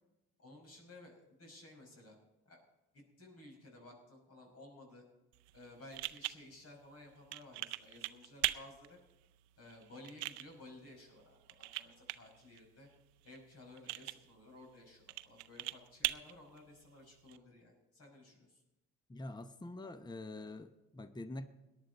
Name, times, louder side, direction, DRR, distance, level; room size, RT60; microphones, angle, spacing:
voice 1, 0.4-2.2 2.5-2.6 2.9-5.0 5.5-9.0 9.6-12.9 13.2-18.6, left 2 dB, 50° left, 1 dB, 5.8 m, -56 dB
sound 1, 5.3-17.4, right 19 dB, 90° right, 0.5 m, -43 dB
voice 2, 19.1-21.5, left 2 dB, 15° left, 11 dB, 0.9 m, -45 dB
18.0 x 11.0 x 4.2 m, 0.99 s
hypercardioid pair, 60°, 32 cm